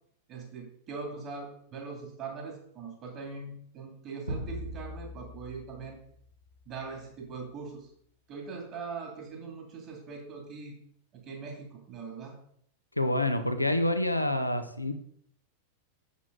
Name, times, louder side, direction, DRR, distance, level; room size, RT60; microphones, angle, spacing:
voice 1, 0.3-6.0 6.7-7.9 8.3-10.7 11.1-12.4, right 4 dB, 35° right, 1 dB, 2.4 m, -41 dB
sound 1, 4.3-6.9, equal, 85° right, 2.2 m, -40 dB
voice 2, 13.0-14.9, left 1 dB, 90° left, 8 dB, 0.9 m, -27 dB
8.3 x 7.3 x 3.9 m, 0.64 s
figure-of-eight pair, 90°, 0 cm